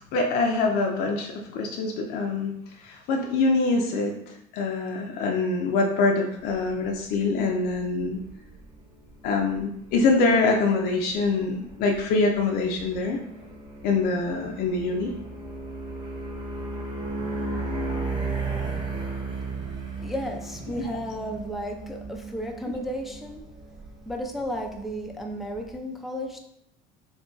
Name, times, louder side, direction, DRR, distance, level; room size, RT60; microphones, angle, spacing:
voice 1, 0.1-2.5 2.8-8.2 9.2-13.2 13.8-15.1, left 3 dB, 60° left, 2 dB, 0.5 m, -24 dB
sound 1, 6.4-25.8, right 3 dB, 25° right, 0.9 m, -36 dB
voice 2, 20.0-23.5 24.1-26.4, equal, ahead, 2 dB, 0.3 m, -33 dB
2.7 x 2.5 x 3.8 m, 0.78 s
cardioid pair, 120°, 18 cm